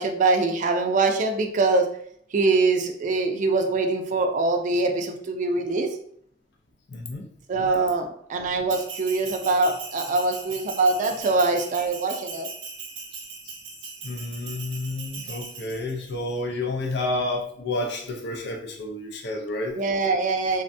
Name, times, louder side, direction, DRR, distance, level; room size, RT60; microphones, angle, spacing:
voice 1, 0.0-1.9 2.3-5.9 7.5-12.5 19.8-20.6, right 3 dB, 40° right, 4 dB, 0.3 m, -23 dB
voice 2, 6.9-7.3 13.4-13.5 13.8-19.8, left 2 dB, 60° left, 1 dB, 0.4 m, -30 dB
Bell, 8.7-16.1, right 5 dB, 75° right, 0.6 m, -39 dB
3.3 x 2.2 x 2.6 m, 0.65 s
head